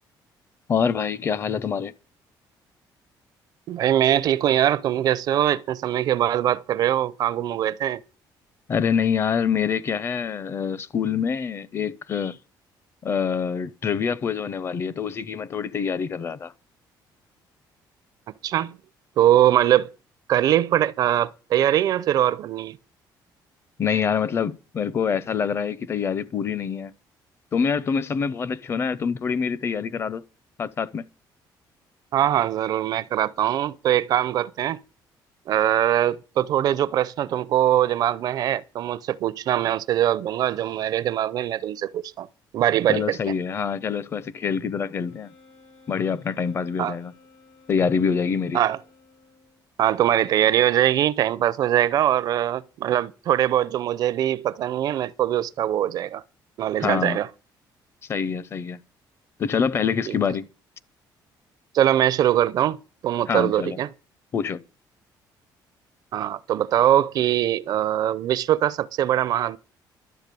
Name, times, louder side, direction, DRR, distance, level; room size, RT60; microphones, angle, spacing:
voice 1, 0.7-1.9 8.7-12.4 13.0-16.5 23.8-26.9 27.5-30.2 30.6-31.0 42.9-45.3 45.9-47.1 47.7-48.6 56.8-57.2 58.1-58.8 59.4-60.5 63.3-63.8 64.3-64.6, left 6 dB, 30° left, 0.6 m, -25 dB
voice 2, 3.7-8.0 18.4-18.7 19.2-19.9 20.3-22.8 32.1-34.8 35.5-42.3 42.5-43.3 46.8-46.9 48.5-48.8 49.8-56.2 56.6-57.3 60.1-60.2 61.7-62.8 63.0-63.9 66.1-69.6, right 11 dB, 55° right, 0.5 m, -22 dB
Wind instrument woodwind instrument, 45.0-49.7, left 3 dB, 80° left, 6.4 m, -55 dB
12.0 x 7.9 x 6.8 m
cardioid pair, 165°, 8 cm